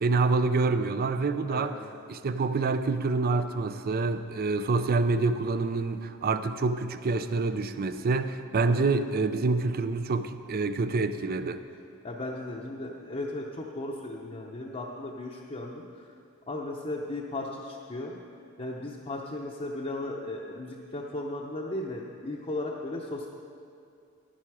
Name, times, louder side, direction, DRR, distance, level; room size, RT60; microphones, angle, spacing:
voice 1, 0.0-1.7 2.1-11.6, right 3 dB, 45° right, 11 dB, 0.5 m, -27 dB
voice 2, 12.0-16.0 16.5-18.1 18.6-23.3, left 2 dB, 30° left, -3 dB, 0.8 m, -36 dB
11.5 x 10.5 x 4.9 m, 2.4 s
head